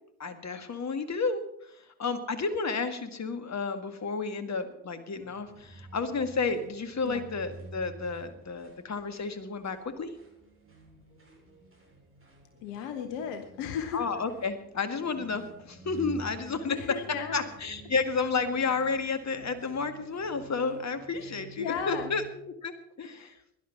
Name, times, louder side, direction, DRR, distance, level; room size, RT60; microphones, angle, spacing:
voice 1, 0.2-1.4 1.7-10.1 13.9-17.0 17.3-23.4, left 4 dB, 35° left, 10 dB, 1.9 m, -31 dB
sound 1, 5.1-22.3, right 2 dB, 30° right, 7.2 m, -50 dB
voice 2, 12.6-14.1 16.7-17.5 19.0-19.1 21.1-22.1 23.2-23.3, left 7 dB, 70° left, 8 dB, 1.3 m, -35 dB
17.5 x 11.0 x 5.8 m, 0.78 s
figure-of-eight pair, 45°, 45 cm